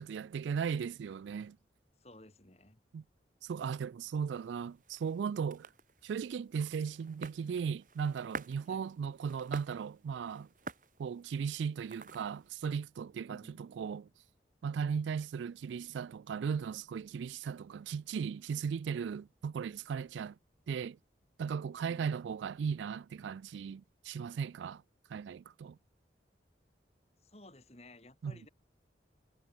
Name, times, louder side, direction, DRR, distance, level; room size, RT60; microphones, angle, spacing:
voice 1, 0.0-1.6 2.9-3.0 3.4-5.7 6.0-10.5 11.0-14.1 14.6-20.4 20.7-21.0 21.4-24.8 25.1-25.8 28.2-28.3, right 6 dB, 85° right, 0.3 m, -37 dB
voice 2, 2.0-2.8 8.7-8.9 13.3-13.6 21.8-22.2 27.2-28.5, left 1 dB, 35° left, 3.1 m, -56 dB
sound 1, 4.4-12.5, right 3 dB, 45° right, 2.8 m, -50 dB
head